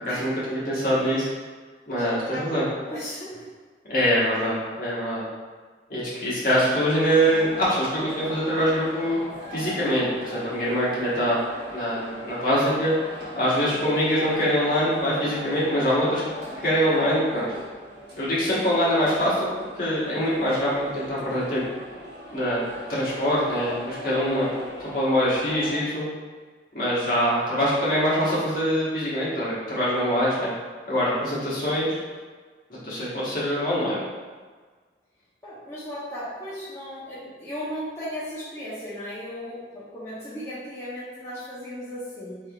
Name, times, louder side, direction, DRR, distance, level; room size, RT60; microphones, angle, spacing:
voice 1, 0.1-1.3 1.9-2.7 3.9-5.2 5.9-9.2 9.5-11.4 11.7-12.9 13.3-16.2 16.6-17.4 18.2-19.5 19.7-21.6 22.3-22.6 22.9-24.5 24.9-26.1 26.7-30.5 30.9-31.9 32.7-34.0, equal, 50° left, -8 dB, 1.2 m, -24 dB
voice 2, 1.9-2.4 2.9-3.4 35.4-42.4, equal, 15° left, -11 dB, 0.8 m, -36 dB
sound 1, 6.9-25.7, equal, 65° right, 1.1 m, -39 dB
4.4 x 3.5 x 2.4 m, 1.5 s
head